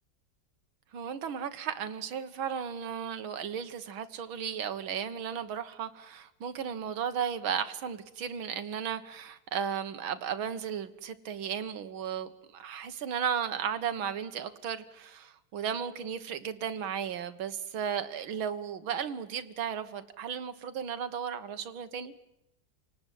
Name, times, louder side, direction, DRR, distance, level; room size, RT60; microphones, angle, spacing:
voice 1, 0.9-22.1, right 8 dB, 80° right, 2.1 m, -35 dB
28.5 x 18.5 x 9.3 m
omnidirectional pair, 2.2 m